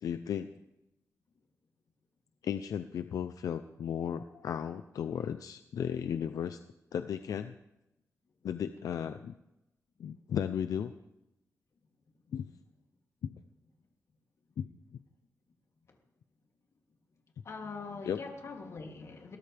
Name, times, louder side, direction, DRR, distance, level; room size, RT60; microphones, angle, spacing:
voice 1, 0.0-0.5 2.4-6.6 6.9-7.5 8.4-9.3 10.0-10.9 12.3-12.5 13.2-13.4 14.6-14.7 18.1-18.2, left 8 dB, 85° left, 10 dB, 0.6 m, -35 dB
voice 2, 17.4-19.4, left 4 dB, 55° left, 1 dB, 2.9 m, -43 dB
21.0 x 18.0 x 3.5 m, 0.91 s
wide cardioid pair, 145°, 6 cm